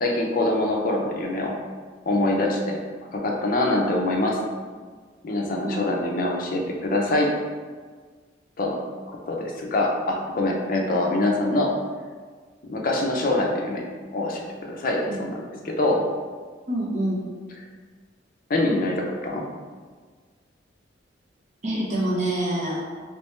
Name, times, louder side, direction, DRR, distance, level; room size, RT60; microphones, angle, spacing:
voice 1, 0.0-1.5 2.1-2.8 3.1-4.4 5.2-7.3 8.6-8.8 9.1-11.7 12.6-13.8 14.1-16.0 18.5-19.5, left 2 dB, 50° left, 0 dB, 0.5 m, -24 dB
voice 2, 16.7-17.2 21.6-22.8, right 1 dB, 40° right, -5 dB, 0.9 m, -26 dB
3.3 x 3.0 x 3.2 m, 1.5 s
head